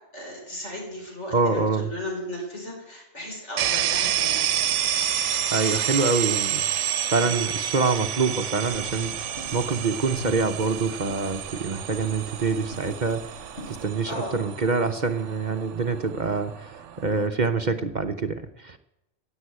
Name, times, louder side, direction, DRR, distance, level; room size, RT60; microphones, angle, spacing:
voice 1, 0.1-4.5 7.2-7.4 14.1-14.4, left 1 dB, 70° left, 0 dB, 5.3 m, -35 dB
voice 2, 1.3-1.9 5.5-13.4 13.7-18.8, right 4 dB, 45° right, 7 dB, 0.8 m, -26 dB
sound 1, 3.6-17.3, right 10 dB, 75° right, 1.0 m, -29 dB
sound 2, 8.7-13.9, left 1 dB, 55° left, 4.2 m, -44 dB
16.5 x 8.1 x 9.4 m, 0.88 s
omnidirectional pair, 1.2 m